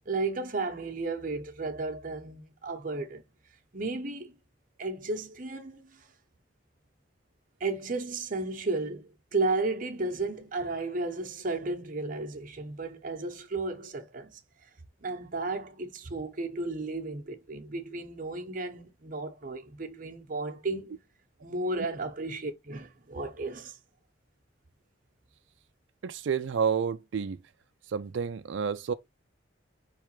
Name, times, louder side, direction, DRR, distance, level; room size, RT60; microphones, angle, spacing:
voice 1, 0.1-3.2 3.7-4.3 4.8-6.1 7.6-14.4 15.0-21.0 21.4-23.8, right 3 dB, 45° right, 0.9 m, -33 dB
voice 2, 26.0-27.4 27.9-28.9, right 6 dB, 75° right, 0.4 m, -30 dB
4.7 x 3.4 x 3.1 m
head